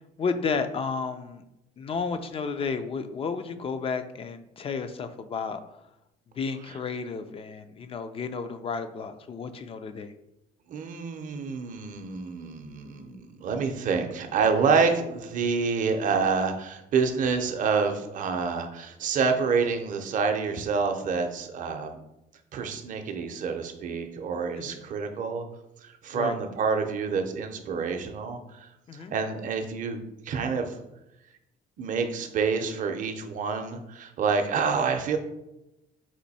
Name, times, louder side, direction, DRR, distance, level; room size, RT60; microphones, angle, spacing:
voice 1, 0.2-1.4 1.8-5.6 6.3-10.1 24.6-24.8 26.1-26.4 28.9-29.1, left 5 dB, 35° left, 9 dB, 0.4 m, -32 dB
voice 2, 10.7-22.0 22.5-25.4 25.8-30.8 31.8-35.2, right 5 dB, 50° right, 5 dB, 0.6 m, -28 dB
4.3 x 2.6 x 4.1 m, 0.88 s
cardioid pair, 110°, 17 cm